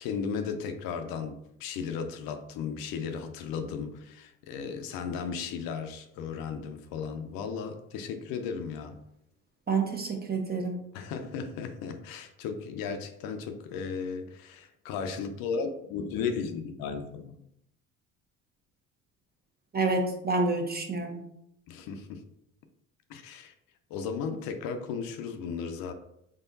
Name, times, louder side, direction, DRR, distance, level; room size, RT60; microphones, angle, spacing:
voice 1, 0.0-9.0 10.9-17.4 21.7-22.2 23.1-23.5 23.9-25.9, left 6 dB, 70° left, 0.6 m, -35 dB
voice 2, 9.7-10.8 19.7-21.3, right 3 dB, 25° right, 0.9 m, -28 dB
3.6 x 3.6 x 2.7 m
hypercardioid pair, 60°, 36 cm